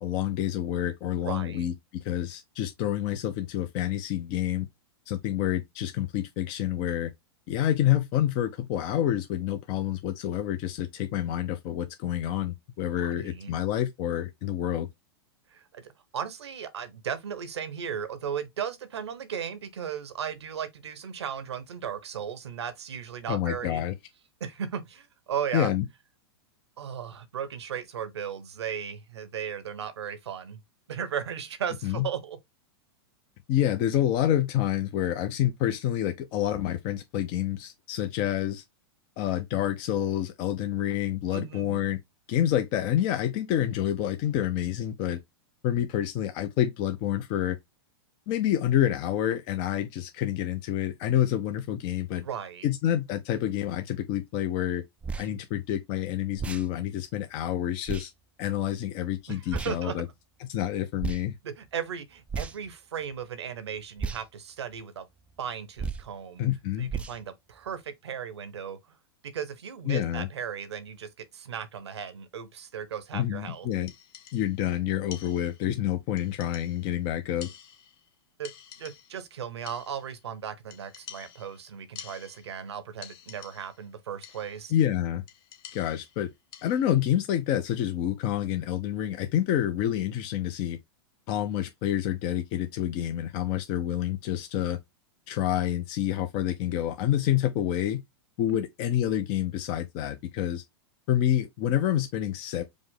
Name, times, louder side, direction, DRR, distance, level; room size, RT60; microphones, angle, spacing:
voice 1, 0.0-4.7 5.1-7.1 7.5-14.9 23.3-23.9 25.5-25.8 31.8-32.1 33.5-38.6 39.2-42.0 42.3-45.2 45.6-47.6 48.3-52.3 52.6-54.8 55.2-58.1 58.4-60.1 60.5-61.3 66.4-66.9 69.9-70.3 73.1-73.9 74.3-77.5 84.7-85.2 85.7-86.3 86.6-90.8 91.3-94.8 95.3-98.0 98.4-100.6 101.1-102.6, left 11 dB, 40° left, 0.5 m, -28 dB
voice 2, 1.2-1.7 13.0-13.5 15.5-23.8 24.4-25.7 26.8-30.6 30.9-32.4 41.3-41.8 52.2-52.7 59.3-60.0 61.4-65.1 65.4-66.4 66.8-68.8 69.2-73.7 78.4-78.5 78.8-84.7 98.5-98.6, right 8 dB, 85° right, 0.9 m, -36 dB
sound 1, 55.0-55.3 56.4-56.7 57.9-58.1 59.5-59.8 61.0-61.2 62.3-62.7 64.0-64.2 65.8-66.1 66.9-67.2, right 5 dB, 10° right, 0.3 m, -33 dB
sound 2, 73.9-74.7 75.1-75.8 76.2-77.0 77.4-78.1 78.4-79.3 79.7-80.2 80.7-82.7 83.0-83.9 84.2-84.7 85.3-87.0, left 9 dB, 60° left, 0.9 m, -48 dB
5.1 x 2.0 x 3.8 m
hypercardioid pair, 115°, 14 cm